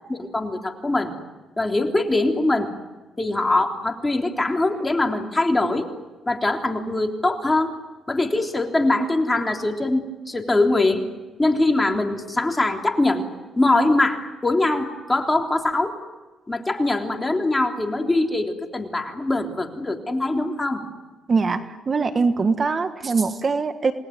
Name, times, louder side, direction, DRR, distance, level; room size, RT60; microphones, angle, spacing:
voice 1, 0.1-1.1 1.6-2.7 3.2-5.9 6.3-7.7 8.1-11.0 11.4-13.3 13.6-15.9 16.5-20.8, left 2 dB, 15° left, 3 dB, 3.4 m, -22 dB
voice 2, 21.3-23.9, right 4 dB, 35° right, 9 dB, 1.5 m, -22 dB
28.5 x 20.0 x 9.4 m, 1.2 s
cardioid pair, 90°, 0 cm